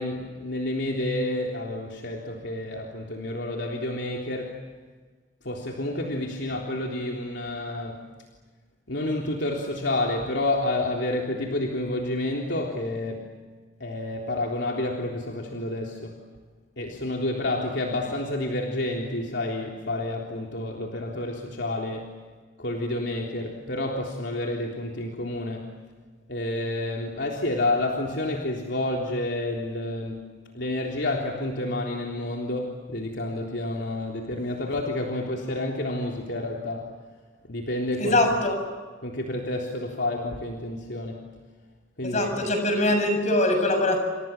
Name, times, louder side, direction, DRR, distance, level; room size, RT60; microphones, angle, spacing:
voice 1, 0.0-4.6 5.4-8.1 8.9-13.3 13.8-16.1 16.8-22.1 22.6-25.7 26.3-36.9 37.5-38.2 39.0-41.3 42.0-42.5, left 1 dB, 65° left, 0 dB, 3.6 m, -29 dB
voice 2, 38.0-38.6 42.0-44.0, left 1 dB, 40° left, 5 dB, 7.5 m, -22 dB
29.0 x 28.0 x 7.3 m, 1.4 s
head